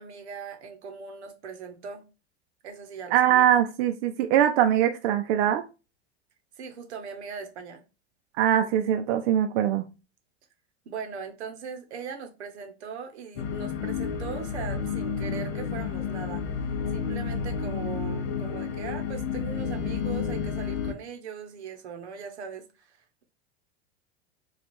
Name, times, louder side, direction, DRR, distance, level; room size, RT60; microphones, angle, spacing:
voice 1, 0.0-2.0 2.6-3.5 6.6-7.8 10.9-16.4 16.9-23.2, right 6 dB, 90° right, 0.9 m, -40 dB
voice 2, 3.1-5.6 8.4-9.9, right 10 dB, 65° right, 0.5 m, -22 dB
sound 1, 13.4-20.9, left 6 dB, 70° left, 0.7 m, -31 dB
3.1 x 2.4 x 4.2 m
hypercardioid pair, 110°, 33 cm